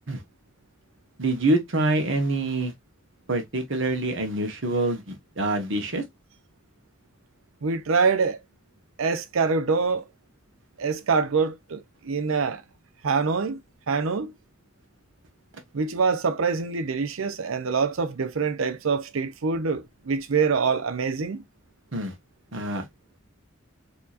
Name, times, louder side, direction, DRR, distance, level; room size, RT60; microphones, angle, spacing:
voice 1, 1.2-2.7 3.3-6.0 21.9-22.1 22.5-22.8, right 2 dB, 65° right, 1.2 m, -26 dB
voice 2, 7.6-8.4 9.0-10.0 10.8-12.6 13.0-13.6 13.9-14.3 15.7-21.4, right 5 dB, 85° right, 0.6 m, -25 dB
4.5 x 2.9 x 2.4 m
head